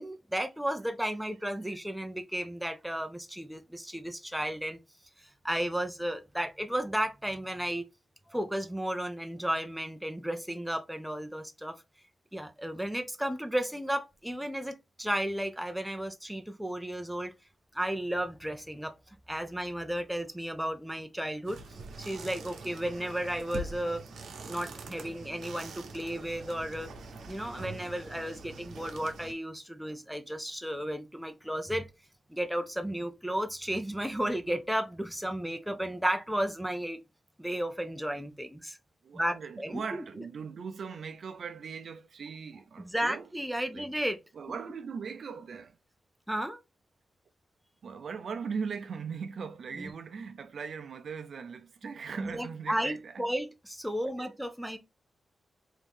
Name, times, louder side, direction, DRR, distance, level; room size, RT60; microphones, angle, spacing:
voice 1, 0.0-4.8 5.4-7.9 8.3-11.8 12.3-17.3 17.7-18.9 19.3-21.6 22.0-24.0 24.5-26.9 27.3-31.9 32.3-37.0 37.4-38.8 39.1-40.0 42.8-44.2 44.5-44.6 46.3-46.6 49.7-49.9 52.2-54.8, right 1 dB, 5° right, 0.6 m, -33 dB
sound 1, 21.4-29.3, right 3 dB, 90° right, 0.8 m, -44 dB
voice 2, 39.0-43.3 43.7-43.9 44.3-45.8 47.8-53.3 54.2-54.4, right 6 dB, 70° right, 0.5 m, -39 dB
3.6 x 2.7 x 3.5 m
cardioid pair, 90°, 0 cm